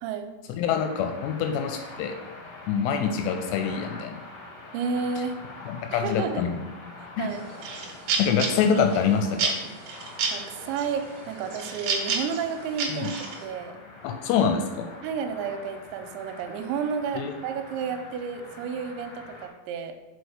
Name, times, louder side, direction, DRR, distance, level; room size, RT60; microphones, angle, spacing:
voice 1, 0.0-0.3 4.7-5.4 5.9-6.4 7.0-7.5 10.3-13.7 15.0-19.9, right 6 dB, 90° right, 6 dB, 2.9 m, -31 dB
voice 2, 0.6-2.1 2.7-4.2 5.7-6.6 7.2-7.3 8.2-9.5 12.9-13.1 14.0-14.9 17.2-17.3, left 7 dB, 85° left, 5 dB, 2.6 m, -25 dB
sound 1, 0.7-19.5, left 2 dB, 55° left, 1.6 m, -44 dB
sound 2, 7.3-9.0 9.4-10.4 10.8-11.2 11.5-13.4, right 5 dB, 70° right, 2.3 m, -29 dB
6.2 x 4.7 x 5.0 m, 1.1 s
omnidirectional pair, 5.1 m